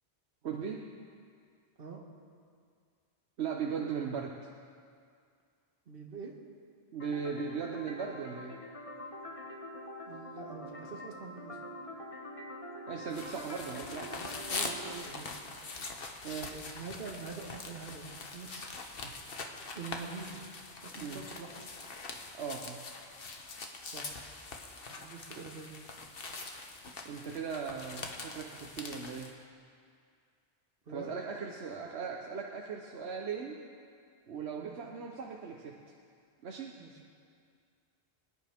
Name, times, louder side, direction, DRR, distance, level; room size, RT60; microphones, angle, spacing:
voice 1, 0.4-0.8 3.4-4.4 6.9-8.6 12.9-14.1 15.1-15.3 16.2-16.6 19.0-19.1 20.9-21.2 22.4-22.8 25.3-25.4 27.0-29.3 30.9-33.6 34.3-35.8 36.4-36.8, right 6 dB, 85° right, 0 dB, 1.1 m, -38 dB
voice 2, 5.9-6.3 10.1-11.7 14.1-15.6 16.5-18.7 19.2-20.4 20.8-21.7 23.9-24.2 24.9-25.8 30.8-31.1 34.6-34.8 36.8-37.0, right 4 dB, 65° right, 0 dB, 1.7 m, -46 dB
sound 1, 7.0-15.0, left 1 dB, 35° left, 1.2 m, -45 dB
sound 2, 13.1-29.3, left 3 dB, 65° left, 1.3 m, -43 dB
25.5 x 10.0 x 3.5 m, 2.2 s
omnidirectional pair, 1.1 m